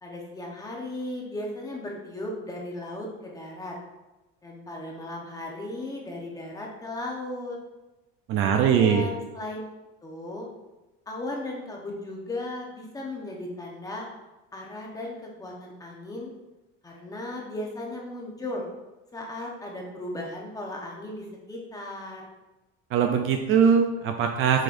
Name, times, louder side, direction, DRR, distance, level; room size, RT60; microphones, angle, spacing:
voice 1, 0.0-3.7 4.4-7.6 8.4-9.6 10.0-10.5 11.1-14.1 14.5-16.3 16.8-18.6 19.1-22.3, left 1 dB, 10° left, -1 dB, 0.9 m, -36 dB
voice 2, 8.3-9.0 22.9-24.6, right 7 dB, 45° right, 5 dB, 0.5 m, -21 dB
7.4 x 5.3 x 2.6 m, 1.1 s
cardioid pair, 160°, 31 cm